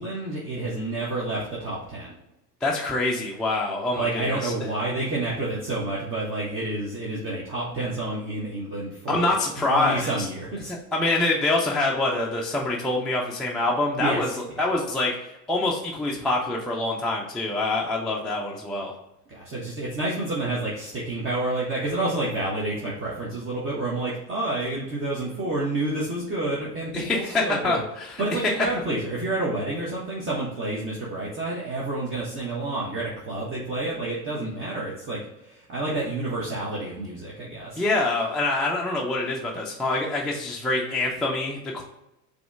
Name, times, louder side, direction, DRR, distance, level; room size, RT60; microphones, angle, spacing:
voice 1, 0.0-2.1 3.9-9.3 9.6-10.7 14.0-14.2 14.6-14.7 19.3-27.8 28.2-37.8, right 2 dB, 25° right, -6 dB, 1.3 m, -29 dB
voice 2, 2.6-4.5 9.1-10.3 10.9-15.1 15.5-19.0 26.9-28.2 28.6-28.7 37.8-41.8, left 2 dB, ahead, -2 dB, 0.4 m, -25 dB
4.9 x 3.2 x 3.5 m, 0.90 s
figure-of-eight pair, 75°, 48 cm